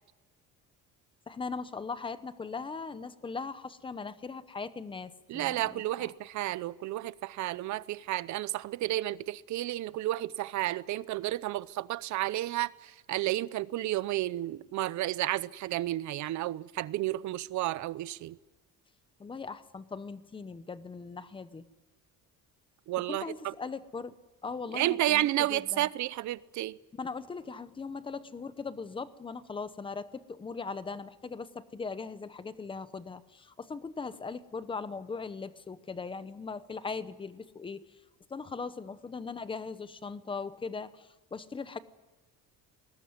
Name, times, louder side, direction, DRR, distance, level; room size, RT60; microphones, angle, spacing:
voice 1, 1.3-6.1 19.2-21.7 23.1-24.2 24.4-25.9 27.0-37.9 38.3-41.8, left 4 dB, 15° left, 0.8 m, -39 dB
voice 2, 5.3-18.4 22.9-23.5 24.7-26.8, right 15 dB, 60° right, 0.8 m, -32 dB
21.0 x 19.5 x 9.6 m
cardioid pair, 175°, 33 cm